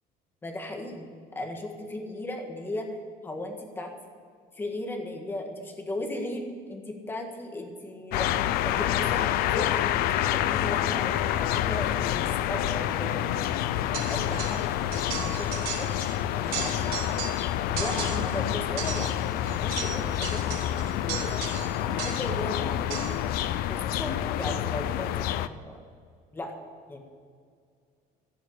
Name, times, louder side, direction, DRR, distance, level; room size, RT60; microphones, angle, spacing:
voice 1, 0.4-3.0 3.2-3.9 4.5-8.3 8.6-13.3 13.6-14.6 15.2-15.9 16.4-17.0 17.7-21.4 21.9-23.0 23.7-25.8 26.3-26.5 26.9-27.0, left 1 dB, 15° left, 2 dB, 1.7 m, -36 dB
sound 1, 8.1-25.5, left 12 dB, 65° left, 0.6 m, -28 dB
sound 2, 13.9-14.7 14.9-16.2 16.4-17.5 17.8-18.4 18.8-22.4 22.9-23.3, right 8 dB, 65° right, 4.1 m, -36 dB
16.5 x 7.0 x 8.8 m, 2.1 s
cardioid pair, 175°, 16 cm